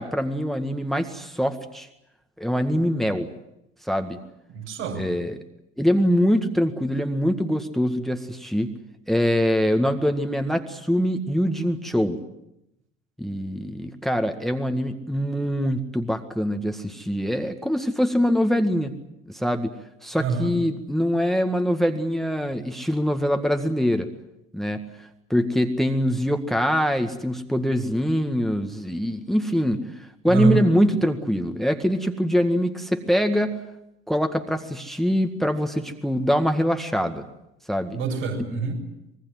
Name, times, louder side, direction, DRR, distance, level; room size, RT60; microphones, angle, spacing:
voice 1, 0.0-1.9 2.4-3.3 3.8-4.2 5.0-5.4 5.8-8.7 9.1-12.2 13.2-19.0 19.3-19.7 20.0-24.1 24.5-24.8 25.3-29.8 30.2-33.6 34.1-37.2 37.7-38.0, equal, ahead, 7 dB, 1.9 m, -23 dB
voice 2, 4.5-5.0 20.2-20.5 30.3-30.6 37.9-38.8, right 5 dB, 70° right, 0 dB, 7.3 m, -25 dB
26.0 x 22.0 x 7.7 m, 0.85 s
figure-of-eight pair, 60°, 36 cm